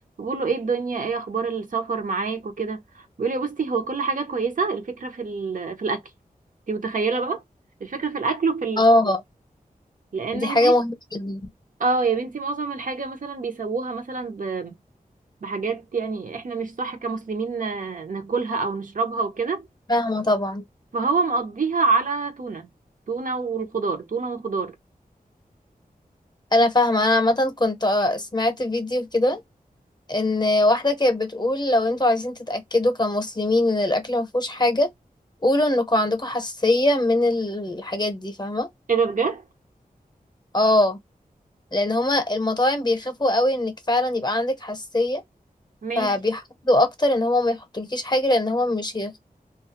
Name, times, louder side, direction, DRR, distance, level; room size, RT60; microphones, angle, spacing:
voice 1, 0.2-6.0 6.7-7.4 7.8-8.8 10.1-10.7 11.8-14.7 15.4-19.7 20.9-22.7 23.1-24.7 38.9-39.4 45.8-46.1, right 4 dB, 60° right, 0.6 m, -26 dB
voice 2, 8.8-9.2 10.3-11.5 19.9-20.6 26.5-29.4 30.1-34.9 35.4-38.7 40.5-41.0 41.7-45.2 45.9-49.2, left 1 dB, 30° left, 0.7 m, -22 dB
2.3 x 2.0 x 2.8 m
cardioid pair, 50°, 15 cm